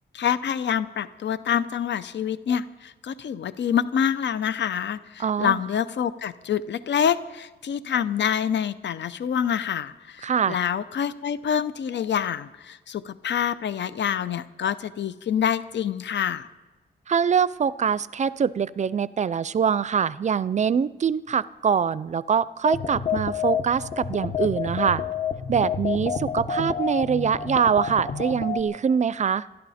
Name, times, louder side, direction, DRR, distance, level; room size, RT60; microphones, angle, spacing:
voice 1, 0.1-16.5, left 8 dB, 80° left, 14 dB, 0.6 m, -26 dB
voice 2, 5.2-5.6 10.2-10.6 17.1-25.0 25.5-29.5, right 7 dB, 40° right, 18 dB, 0.4 m, -24 dB
sound 1, 22.6-28.6, left 6 dB, 50° left, 1.1 m, -29 dB
26.5 x 12.5 x 4.2 m, 1.2 s
wide cardioid pair, 175°, 18 cm